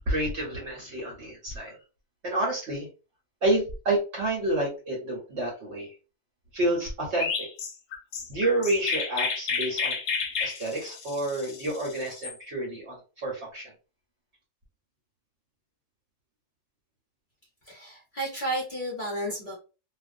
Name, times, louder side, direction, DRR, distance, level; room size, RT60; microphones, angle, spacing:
voice 1, 0.1-1.7 2.2-2.9 3.4-5.9 6.5-7.5 8.3-10.0 10.4-13.7, right 1 dB, 55° right, -2 dB, 0.9 m, -29 dB
Chirp tweet, 7.2-12.3, left 5 dB, 65° left, 0.9 m, -31 dB
voice 2, 17.6-19.5, right 1 dB, 40° left, -5 dB, 0.8 m, -32 dB
2.5 x 2.2 x 2.4 m, 0.33 s
omnidirectional pair, 1.6 m